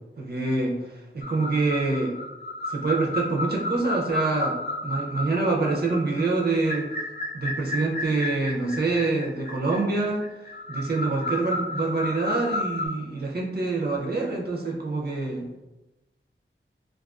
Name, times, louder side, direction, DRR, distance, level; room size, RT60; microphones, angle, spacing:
voice 1, 0.2-2.1 2.7-6.9 7.3-10.3 10.7-15.5, right 3 dB, 50° right, -1 dB, 0.5 m, -26 dB
sound 1, 1.2-12.9, left 2 dB, 50° left, 0.4 m, -32 dB
2.3 x 2.3 x 2.3 m, 0.99 s
wide cardioid pair, 50°, 21 cm